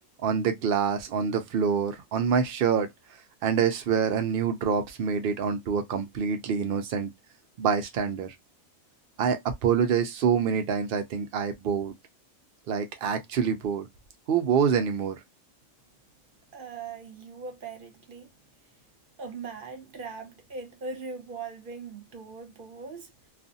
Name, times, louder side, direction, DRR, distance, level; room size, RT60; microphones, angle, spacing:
voice 1, 0.2-2.9 3.4-7.1 7.6-8.3 9.2-11.9 12.7-13.9 14.3-15.2, right 7 dB, 85° right, 0.5 m, -26 dB
voice 2, 16.5-18.3 19.2-23.1, right 4 dB, 45° right, 0.9 m, -40 dB
2.4 x 2.4 x 2.5 m
omnidirectional pair, 1.5 m